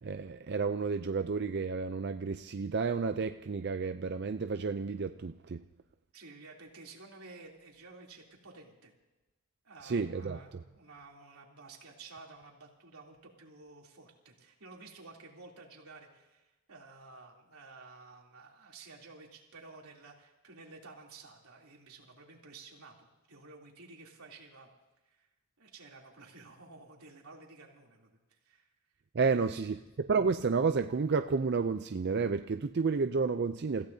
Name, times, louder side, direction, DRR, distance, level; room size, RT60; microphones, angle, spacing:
voice 1, 0.0-5.6 9.8-10.6 29.1-29.8 30.1-33.9, right 4 dB, 50° right, 8 dB, 0.4 m, -31 dB
voice 2, 6.1-8.9 9.6-24.7 25.0-25.3 25.6-28.7 29.3-29.8, right 3 dB, 90° right, -1 dB, 3.2 m, -53 dB
30.0 x 15.5 x 2.8 m, 1.1 s
head